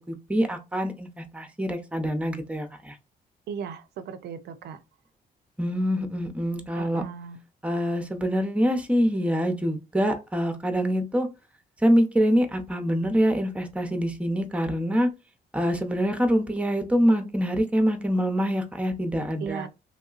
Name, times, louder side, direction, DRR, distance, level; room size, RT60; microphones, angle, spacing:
voice 1, 0.1-3.0 5.6-7.0 7.6-11.3 11.8-15.1 15.5-19.7, equal, 5° right, 0.6 m, -25 dB
voice 2, 3.5-4.8 6.8-7.4 19.4-19.7, right 7 dB, 80° right, 0.4 m, -36 dB
3.1 x 2.7 x 2.4 m
cardioid pair, 110°, 17 cm